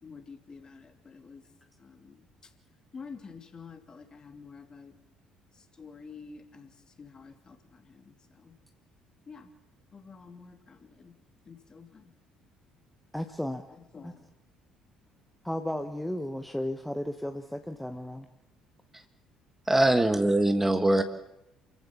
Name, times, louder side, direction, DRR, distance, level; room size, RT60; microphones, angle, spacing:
voice 1, 0.0-1.4 1.8-2.2 2.9-4.9 5.8-6.7 7.0-8.5 9.3-9.5 9.9-11.1 11.5-12.1 13.7-14.2, left 5 dB, 35° left, 6 dB, 2.8 m, -48 dB
voice 2, 13.1-13.6 14.0-14.1 15.4-18.3, left 1 dB, 5° left, 7 dB, 1.2 m, -34 dB
voice 3, 19.7-21.0, right 1 dB, 10° right, 9 dB, 1.4 m, -22 dB
28.0 x 15.0 x 7.2 m, 0.88 s
figure-of-eight pair, 50°, 2 cm